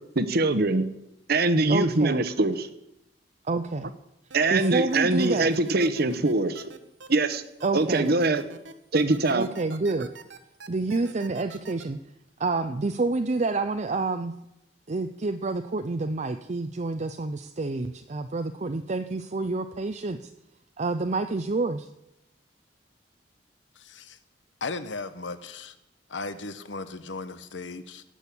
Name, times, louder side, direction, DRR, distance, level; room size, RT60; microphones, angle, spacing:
voice 1, 0.1-0.8 1.3-2.7 4.3-6.7 7.1-7.4 7.7-8.4 8.9-9.5, right 2 dB, 55° right, 11 dB, 1.0 m, -23 dB
voice 2, 1.7-2.2 3.5-3.9 4.5-5.5 7.6-8.1 9.3-10.2 10.7-12.0 12.4-14.3 14.9-20.3 20.8-21.9, right 3 dB, 40° right, 8 dB, 0.6 m, -28 dB
sound 1, 4.3-11.8, right 3 dB, 80° right, 1.3 m, -45 dB
voice 3, 23.7-24.2 24.6-25.7 26.1-28.0, left 3 dB, 80° left, 12 dB, 1.0 m, -36 dB
17.5 x 6.4 x 8.5 m, 0.86 s
head